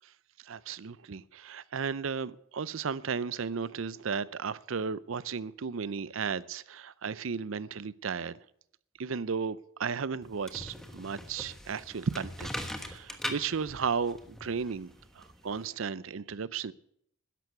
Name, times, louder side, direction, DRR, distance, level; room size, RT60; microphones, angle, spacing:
voice 1, 0.4-8.4 9.0-16.7, right 5 dB, 70° right, 0.5 m, -34 dB
sound 1, 10.2-15.7, left 1 dB, ahead, 1.2 m, -41 dB
13.0 x 10.5 x 8.2 m
head